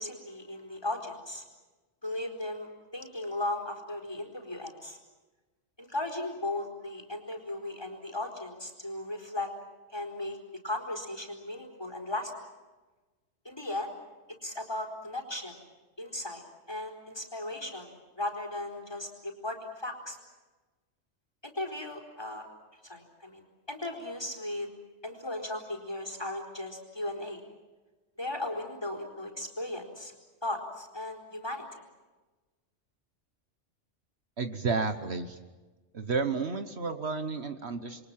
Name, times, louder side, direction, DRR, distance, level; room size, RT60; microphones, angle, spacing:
voice 1, 0.0-1.4 2.0-5.0 5.8-9.5 9.9-10.4 10.6-12.3 13.4-14.0 14.4-15.5 16.0-20.2 21.4-22.5 22.8-23.4 23.7-24.7 25.0-27.4 28.2-30.1 30.4-31.6, left 1 dB, 20° left, 3 dB, 4.3 m, -36 dB
voice 2, 34.4-35.4 35.9-38.1, right 4 dB, 60° right, 8 dB, 1.5 m, -31 dB
28.5 x 23.0 x 7.5 m, 1.2 s
omnidirectional pair, 1.3 m